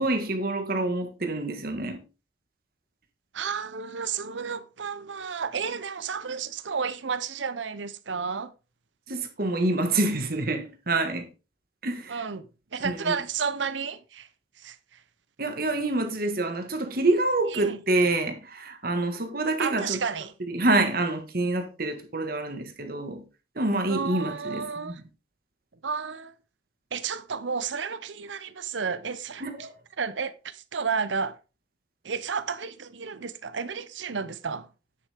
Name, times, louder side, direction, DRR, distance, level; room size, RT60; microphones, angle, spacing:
voice 1, 0.0-2.0 9.1-11.3 11.8-12.2 12.8-13.1 15.4-20.0 20.5-23.2 23.5-25.0 29.4-29.7, right 2 dB, 50° right, 1.7 m, -27 dB
voice 2, 3.3-8.5 12.1-12.5 12.7-14.3 14.6-14.8 17.5-17.8 19.6-20.3 23.9-25.0 25.8-26.3 26.9-29.4 30.0-31.4 32.0-34.7, right 6 dB, 80° right, 0.8 m, -32 dB
9.6 x 7.9 x 3.5 m
head